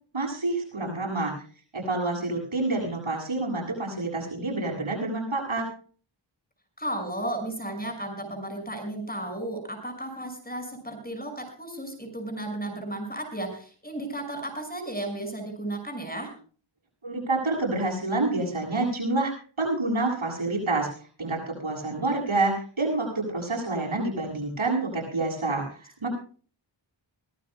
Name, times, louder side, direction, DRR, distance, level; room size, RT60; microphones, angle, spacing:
voice 1, 0.1-1.3 1.7-5.7 17.0-20.9 21.2-26.1, right 2 dB, 85° right, -1 dB, 7.8 m, -28 dB
voice 2, 6.8-16.3, right 1 dB, 20° left, 5 dB, 6.0 m, -34 dB
23.5 x 17.5 x 2.3 m, 0.41 s
wide cardioid pair, 50°, 48 cm